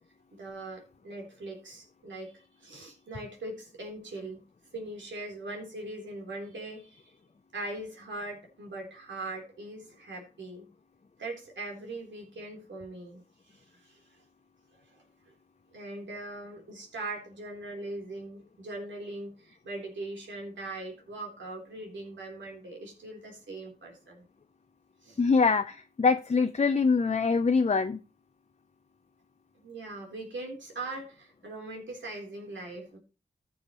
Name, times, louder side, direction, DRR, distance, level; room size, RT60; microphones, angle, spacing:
voice 1, 0.3-4.4 4.7-7.1 7.5-10.7 11.2-14.2 14.7-15.3 15.7-24.2 25.0-25.2 29.6-33.0, right 2 dB, 80° right, 0 dB, 3.7 m, -41 dB
voice 2, 25.2-28.0, left 4 dB, 35° left, 8 dB, 0.7 m, -24 dB
14.0 x 7.1 x 3.1 m, 0.35 s
cardioid pair, 40°, 19 cm